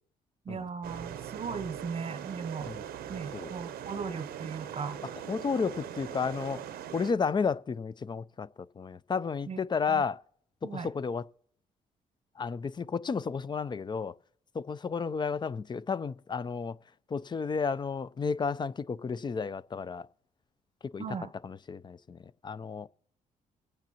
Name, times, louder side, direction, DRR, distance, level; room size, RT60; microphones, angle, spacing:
voice 1, 0.5-2.7 3.1-5.0 9.5-9.6 9.9-10.0 10.6-10.9 21.0-21.3, right 5 dB, 40° right, 0.7 m, -37 dB
sound 1, 0.8-7.1, right 9 dB, 80° right, 0.7 m, -41 dB
voice 2, 5.3-6.6 6.9-10.2 10.6-11.2 12.4-14.1 14.5-16.8 17.1-20.1 20.9-21.0 21.4-22.9, left 5 dB, 30° left, 0.4 m, -32 dB
22.0 x 8.9 x 2.9 m
supercardioid pair, 70°, 16 cm